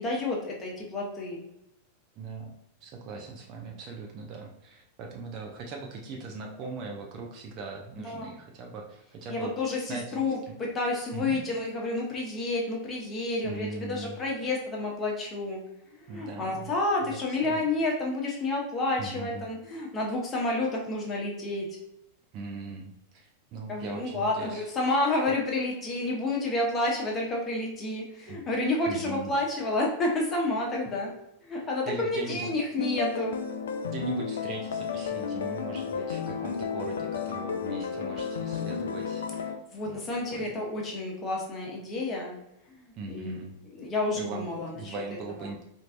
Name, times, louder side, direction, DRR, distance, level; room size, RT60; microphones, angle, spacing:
voice 1, 0.0-1.4 8.0-8.3 9.3-15.6 16.0-21.7 23.7-31.1 31.5-33.4 39.7-42.4 42.7-43.3 43.7-44.9, left 2 dB, 25° left, -1 dB, 1.0 m, -30 dB
voice 2, 2.2-2.5 2.8-10.6 11.1-11.4 13.4-14.2 16.1-16.7 17.0-17.2 17.4-17.6 19.0-19.5 22.3-25.0 28.3-28.4 28.9-29.3 31.9-32.6 33.9-39.3 39.8-40.5 42.9-43.5 44.1-44.5 44.7-45.6, right 3 dB, 40° right, 1 dB, 0.6 m, -40 dB
sound 1, 32.8-39.6, left 6 dB, 65° left, 0.3 m, -32 dB
4.4 x 2.7 x 2.4 m, 0.84 s
figure-of-eight pair, 90°, 0 cm